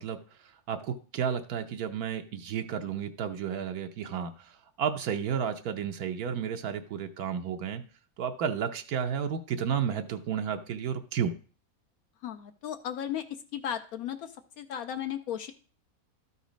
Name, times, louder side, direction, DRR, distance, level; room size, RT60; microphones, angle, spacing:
voice 1, 0.0-7.8 8.2-11.3, right 7 dB, 80° right, 6 dB, 1.2 m, -32 dB
voice 2, 12.2-13.2 13.5-14.3 14.6-15.5, left 9 dB, 80° left, 6 dB, 1.1 m, -35 dB
12.5 x 4.1 x 5.1 m, 0.40 s
omnidirectional pair, 1.6 m